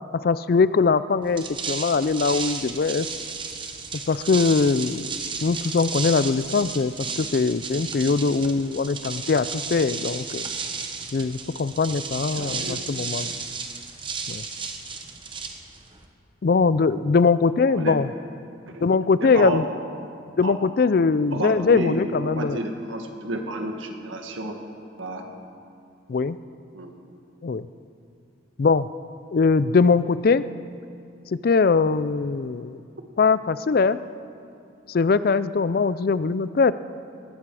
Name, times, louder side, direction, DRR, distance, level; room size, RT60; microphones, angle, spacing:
voice 1, 0.1-3.1 4.1-5.1 5.4-10.5 11.1-13.3 14.3-14.4 16.4-18.1 18.8-19.6 20.4-22.6 26.1-26.4 27.4-27.7 28.6-28.9 29.3-30.4 31.4-32.8 33.2-34.0 34.9-36.7, left 4 dB, 50° left, 15 dB, 0.4 m, -21 dB
sound 1, 1.2-16.1, right 5 dB, 25° right, 1.1 m, -33 dB
voice 2, 12.4-12.9 17.7-18.0 18.7-18.9 19.2-19.6 20.4-20.5 21.3-24.6 25.0-25.3 26.7-26.9, right 1 dB, 80° right, 3 dB, 1.8 m, -31 dB
19.5 x 14.5 x 4.8 m, 2.5 s
head